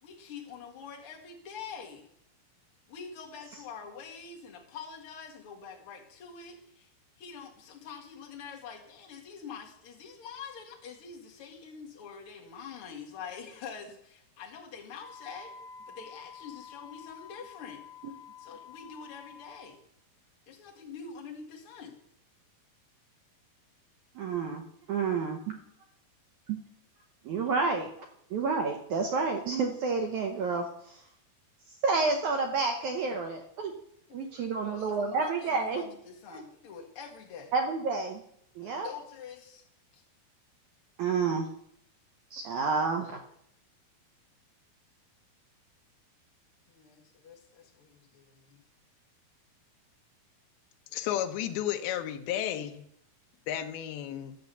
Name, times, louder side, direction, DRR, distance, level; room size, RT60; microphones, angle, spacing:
voice 1, 0.0-2.0 2.9-6.9 7.2-15.5 15.9-17.8 18.4-19.8 20.5-22.0 34.1-37.5 38.6-39.6 39.9-40.0 46.7-48.6, left 6 dB, 45° left, -1 dB, 2.0 m, -45 dB
Wind instrument woodwind instrument, 15.0-19.8, left 6 dB, 15° right, 3.9 m, -49 dB
voice 2, 24.1-24.6 24.9-25.6 26.5-26.6 27.2-27.9 28.3-31.0 31.8-33.7 34.1-35.8 36.3-36.4 37.5-38.2 38.6-38.9 41.0-41.5 42.3-43.2, right 4 dB, 75° right, 4 dB, 1.8 m, -29 dB
voice 3, 50.9-52.8 53.5-54.3, left 11 dB, 80° left, 6 dB, 2.6 m, -32 dB
11.5 x 7.0 x 6.9 m, 0.72 s
omnidirectional pair, 4.5 m